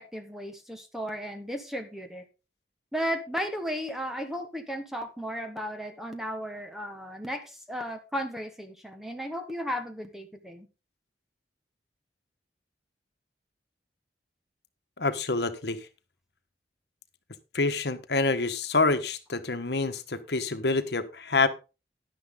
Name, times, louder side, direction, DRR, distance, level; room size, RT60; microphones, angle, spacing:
voice 1, 0.0-2.2 2.9-10.7, equal, ahead, 6 dB, 1.3 m, -35 dB
voice 2, 15.0-15.8 17.5-21.5, left 3 dB, 65° left, 10 dB, 1.3 m, -27 dB
11.0 x 10.5 x 3.8 m, 0.29 s
head